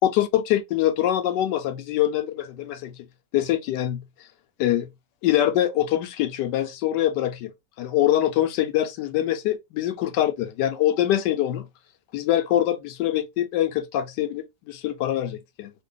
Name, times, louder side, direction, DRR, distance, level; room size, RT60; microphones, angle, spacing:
voice 1, 0.0-3.0 3.3-4.0 4.6-4.9 5.2-7.5 7.8-11.7 12.1-15.7, left 12 dB, 80° left, 1.2 m, -24 dB
3.2 x 2.2 x 3.5 m
omnidirectional pair, 1.9 m